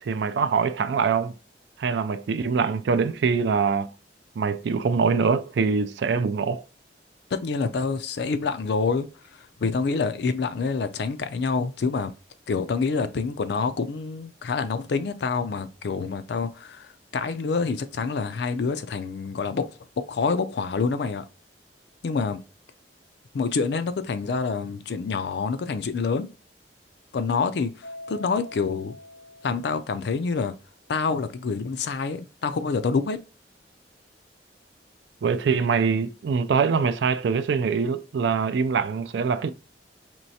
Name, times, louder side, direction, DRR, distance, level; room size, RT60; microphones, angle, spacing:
voice 1, 0.0-1.3 1.8-3.9 4.4-6.6 35.2-39.5, right 5 dB, 70° right, 0.4 m, -24 dB
voice 2, 7.3-12.1 12.5-19.7 20.1-21.3 22.0-22.4 23.3-26.3 27.1-29.0 29.4-30.5 30.9-33.2, left 4 dB, 65° left, 0.4 m, -27 dB
Mallet percussion, 27.8-30.3, left 1 dB, 90° left, 0.8 m, -44 dB
4.4 x 3.1 x 2.7 m
head